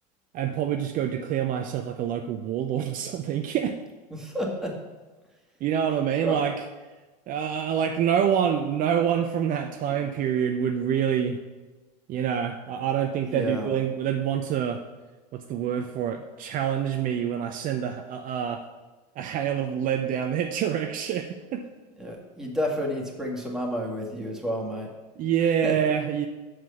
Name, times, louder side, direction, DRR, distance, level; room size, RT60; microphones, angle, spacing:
voice 1, 0.3-3.8 5.6-6.7 7.3-11.4 12.1-14.8 15.3-18.6 19.2-21.6 25.2-26.3, right 8 dB, 40° right, 6 dB, 0.6 m, -26 dB
voice 2, 4.1-4.7 6.2-6.4 13.3-13.7 22.0-24.9 25.6-25.7, equal, ahead, -2 dB, 2.0 m, -30 dB
7.4 x 4.8 x 7.0 m, 1.2 s
hypercardioid pair, 95°, 21 cm